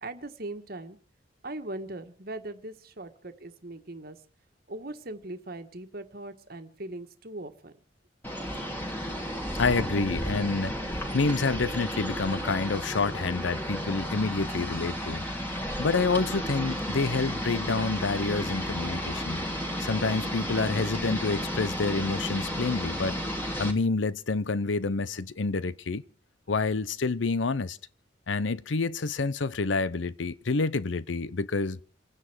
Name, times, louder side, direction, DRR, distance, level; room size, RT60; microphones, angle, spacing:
voice 1, 0.0-1.0 1.4-4.2 4.7-7.7, right 2 dB, 50° right, 1.5 m, -40 dB
sound 1, 8.2-23.7, equal, 10° left, 2.6 m, -33 dB
voice 2, 9.6-15.2 15.8-19.4 19.8-23.2 23.6-26.0 26.5-27.8 28.3-31.8, left 3 dB, 80° left, 0.7 m, -28 dB
28.5 x 9.8 x 4.6 m
head